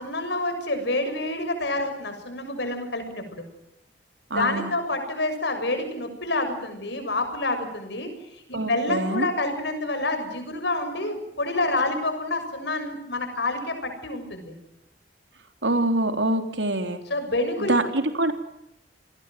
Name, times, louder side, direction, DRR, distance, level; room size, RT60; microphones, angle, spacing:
voice 1, 0.0-3.5 4.3-14.5 17.1-17.8, left 2 dB, 70° left, 7 dB, 7.0 m, -28 dB
voice 2, 4.3-4.7 8.5-9.3 15.6-17.0 17.6-18.3, right 1 dB, 80° right, 7 dB, 3.6 m, -25 dB
29.0 x 21.0 x 7.7 m, 0.81 s
head